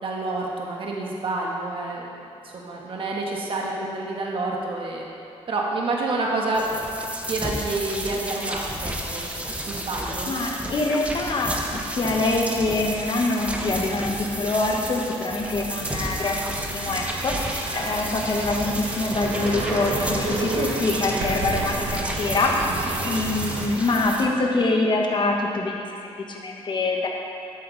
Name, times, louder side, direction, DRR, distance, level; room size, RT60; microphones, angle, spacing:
voice 1, 0.0-2.1 2.4-5.1 5.5-6.7 7.3-9.3 9.7-10.3 22.7-22.9, right 2 dB, 55° right, -2 dB, 1.5 m, -28 dB
sound 1, 6.5-24.3, right 1 dB, 10° right, 1.1 m, -32 dB
voice 2, 10.3-22.5 23.0-27.1, left 2 dB, 45° left, 0 dB, 1.4 m, -25 dB
sound 2, 15.8-23.7, right 2 dB, 85° right, 1.6 m, -31 dB
12.0 x 7.8 x 4.1 m, 2.6 s
cardioid pair, 95°, 11 cm